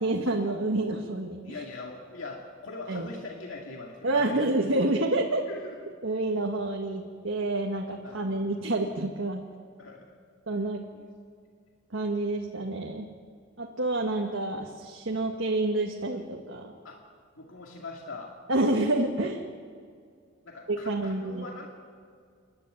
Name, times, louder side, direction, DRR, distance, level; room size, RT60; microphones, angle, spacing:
voice 1, 0.0-1.6 2.9-3.1 4.0-5.4 6.0-9.5 10.5-10.8 11.9-13.1 13.6-16.7 18.5-19.4 20.7-21.4, right 2 dB, 70° right, 1 dB, 1.6 m, -28 dB
voice 2, 1.4-4.5 5.5-5.8 8.0-8.3 9.8-10.1 10.9-11.0 16.8-17.0 17.4-18.3 20.4-21.7, left 3 dB, 70° left, 0 dB, 2.3 m, -41 dB
29.5 x 11.5 x 9.2 m, 2.1 s
head